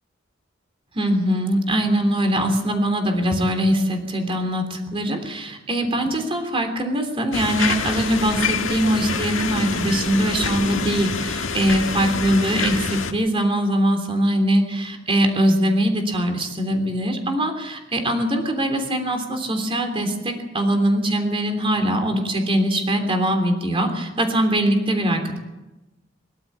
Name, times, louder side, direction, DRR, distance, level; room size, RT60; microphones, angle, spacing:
voice 1, 0.9-25.4, right 1 dB, 30° right, 5 dB, 3.3 m, -22 dB
sound 1, 7.3-13.1, left 4 dB, 80° left, 1.7 m, -26 dB
23.5 x 13.0 x 8.6 m, 1.0 s
head